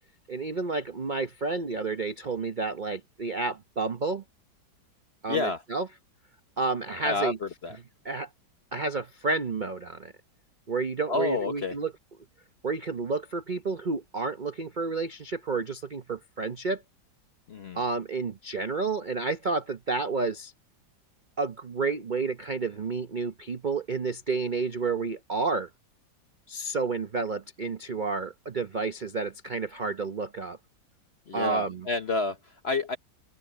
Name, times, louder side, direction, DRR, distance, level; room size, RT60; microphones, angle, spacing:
voice 1, 0.3-4.2 5.2-5.9 6.6-7.4 8.0-8.3 8.7-10.1 10.7-11.9 12.6-16.8 17.7-20.5 21.4-25.7 26.5-30.6 31.3-31.8, right 4 dB, 55° right, 0.5 m, -30 dB
voice 2, 5.3-5.6 7.0-7.8 11.1-11.8 17.5-17.8 31.3-33.0, left 3 dB, 45° left, 0.9 m, -29 dB
open air
omnidirectional pair, 2.1 m